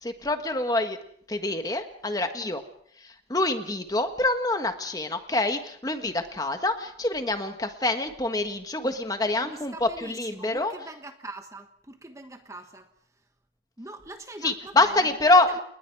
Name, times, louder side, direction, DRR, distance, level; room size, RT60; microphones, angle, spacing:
voice 1, 0.0-1.0 1.3-2.6 3.0-10.7 14.4-15.6, left 2 dB, 20° left, 7 dB, 1.5 m, -26 dB
voice 2, 9.4-12.9 13.8-15.1 15.5-15.6, right 2 dB, 15° right, 7 dB, 1.2 m, -42 dB
30.0 x 20.0 x 4.8 m, 0.64 s
head